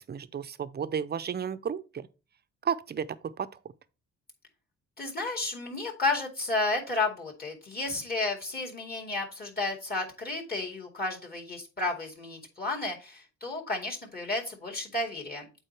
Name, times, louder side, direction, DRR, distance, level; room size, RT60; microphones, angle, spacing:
voice 1, 0.0-2.1 2.6-3.5, right 7 dB, 35° right, 0.6 m, -33 dB
voice 2, 5.0-15.5, left 2 dB, 30° left, 2.3 m, -32 dB
8.0 x 4.3 x 4.5 m
cardioid pair, 90°, 30 cm